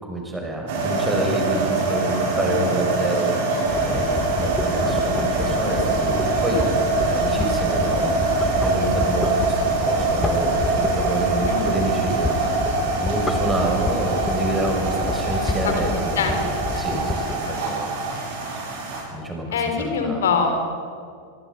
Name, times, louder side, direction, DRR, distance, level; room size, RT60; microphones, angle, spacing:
voice 1, 0.0-3.3 3.8-6.7 7.0-8.1 8.6-12.3 12.9-16.4 16.7-17.9 19.1-20.2, right 1 dB, 10° right, 1 dB, 6.2 m, -28 dB
sound 1, 0.7-19.0, right 3 dB, 50° right, 7.4 m, -24 dB
sound 2, 3.6-17.3, left 4 dB, 15° left, 1.3 m, -30 dB
voice 2, 16.2-16.9 17.4-17.9 19.5-20.7, left 5 dB, 60° left, 5 dB, 4.4 m, -25 dB
27.0 x 22.5 x 5.4 m, 2.2 s
figure-of-eight pair, 90°, 0 cm